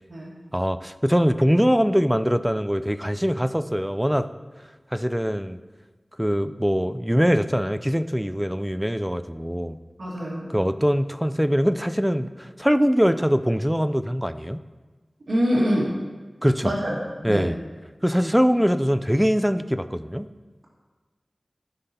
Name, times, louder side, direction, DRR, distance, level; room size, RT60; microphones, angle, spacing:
voice 1, 0.5-4.3 4.9-5.6 6.2-9.8 10.5-14.6 16.4-16.7 17.2-17.6 18.0-20.3, equal, 5° right, 12 dB, 0.3 m, -22 dB
voice 2, 10.0-10.5 15.3-15.9 16.6-17.0 17.3-17.5, equal, 90° right, -4 dB, 1.7 m, -24 dB
13.5 x 5.6 x 2.8 m, 1.3 s
wide cardioid pair, 65°, 0 cm